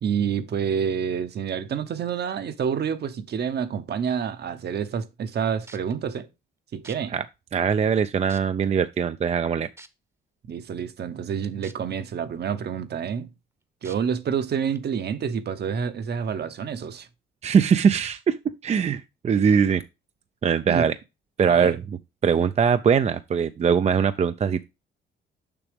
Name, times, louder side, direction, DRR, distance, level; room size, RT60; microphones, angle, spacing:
voice 1, 0.0-6.3 6.7-7.1 10.5-13.3 13.8-17.1 20.7-20.9 21.5-21.8, right 7 dB, 55° right, 1.0 m, -28 dB
sound 1, 5.3-5.4 5.7-5.9 6.8-7.0 7.7-7.8 8.3-8.7 9.8-9.9 11.6-11.7 12.2-12.3 13.8-14.0 14.7-14.8, right 2 dB, 15° right, 0.9 m, -46 dB
voice 2, 7.5-9.7 17.4-19.8 20.4-21.0 21.4-21.8 22.2-24.6, right 7 dB, 35° right, 0.4 m, -21 dB
7.0 x 5.9 x 3.4 m
cardioid pair, 90°, 20 cm